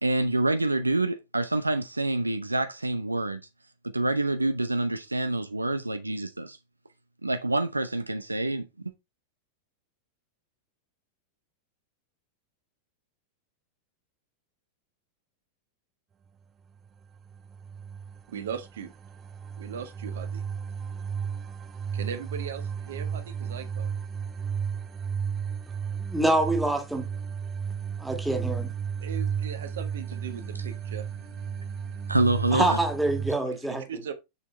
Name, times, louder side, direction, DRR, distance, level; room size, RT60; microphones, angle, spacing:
voice 1, 0.0-3.4 3.9-6.6 7.2-8.7 30.5-30.7 32.1-32.8, right 2 dB, 85° right, 0.7 m, -27 dB
sound 1, 17.0-33.3, right 7 dB, 25° right, 0.5 m, -34 dB
voice 2, 18.3-18.9 19.6-20.4 21.9-24.0 29.0-31.1 33.9-34.1, right 7 dB, 60° right, 1.4 m, -38 dB
voice 3, 26.0-27.1 28.0-28.7 32.5-34.0, right 2 dB, 5° right, 1.7 m, -26 dB
7.0 x 6.5 x 3.3 m
figure-of-eight pair, 90°, 0 cm